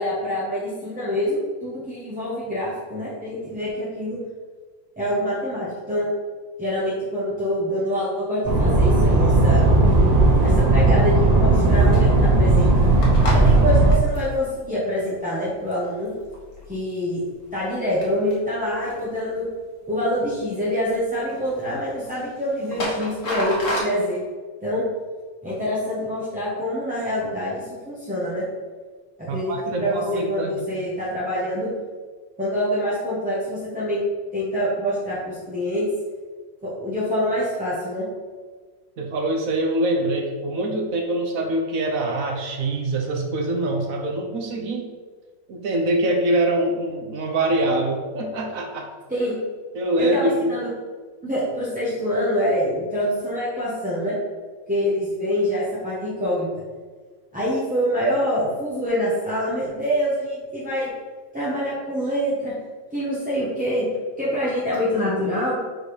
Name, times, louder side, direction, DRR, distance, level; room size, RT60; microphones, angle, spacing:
voice 1, 0.0-4.2 5.0-6.1 6.6-9.7 10.4-12.7 13.3-16.1 16.7-17.2 17.5-19.5 19.9-24.2 24.6-24.8 25.4-28.4 29.2-31.7 32.4-34.0 34.3-35.9 36.6-38.0 49.1-49.3 50.0-50.7 51.2-54.1 54.7-56.5 57.3-60.9 61.3-62.5 62.9-63.9 64.2-65.6, equal, 5° right, -10 dB, 1.0 m, -25 dB
sound 1, 8.4-13.9, right 2 dB, 30° right, 0.8 m, -16 dB
sound 2, 12.8-16.7 17.2-17.7 18.0-19.3 20.0-20.5 20.8-21.0 21.2-23.8, equal, 45° left, 1.6 m, -33 dB
voice 2, 29.3-30.6 39.0-44.9 45.5-48.9 49.7-50.6, right 1 dB, 55° right, 2 dB, 1.0 m, -24 dB
5.2 x 4.5 x 4.9 m, 1.5 s
omnidirectional pair, 2.1 m